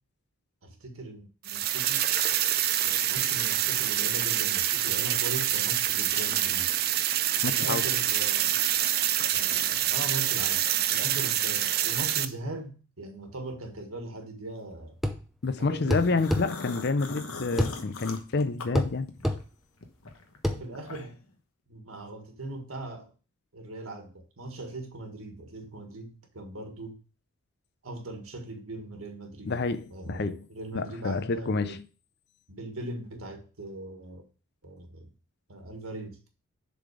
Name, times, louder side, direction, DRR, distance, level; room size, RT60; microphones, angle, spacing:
voice 1, 0.6-2.1 2.8-6.7 7.5-8.6 9.3-15.0 15.6-16.3 20.5-21.2 21.7-23.1 23.5-27.0 27.8-29.6 29.9-31.8 32.5-34.2 34.6-35.1 35.5-36.2, right 2 dB, 75° right, 1.6 m, -40 dB
sound 1, 1.4-12.3, right 12 dB, 45° right, 0.4 m, -26 dB
voice 2, 7.4-7.8 15.4-19.1 29.5-30.3 30.7-31.8, left 3 dB, 50° left, 0.5 m, -28 dB
sound 2, 15.0-15.2 15.9-16.5 17.6-17.8 18.7-18.9 19.2-19.4 20.4-20.6, left 1 dB, ahead, 0.6 m, -26 dB
sound 3, 15.9-19.4 19.8-21.3, left 3 dB, 80° left, 1.1 m, -41 dB
7.0 x 4.0 x 4.9 m
head